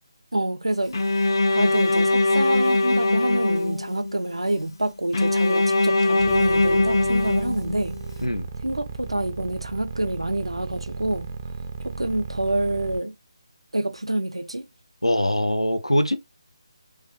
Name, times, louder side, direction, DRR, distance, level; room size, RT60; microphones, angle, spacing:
voice 1, 0.3-8.0 8.6-11.3 11.8-13.2 13.7-14.7, right 1 dB, 85° right, 0.5 m, -27 dB
Bowed string instrument, 0.9-4.1 5.1-8.1, left 2 dB, 45° left, 0.6 m, -21 dB
sound 1, 6.2-13.0, right 5 dB, 25° right, 0.4 m, -34 dB
voice 2, 15.0-16.2, equal, 90° left, 0.7 m, -22 dB
3.3 x 2.2 x 3.0 m
figure-of-eight pair, 155°, 3 cm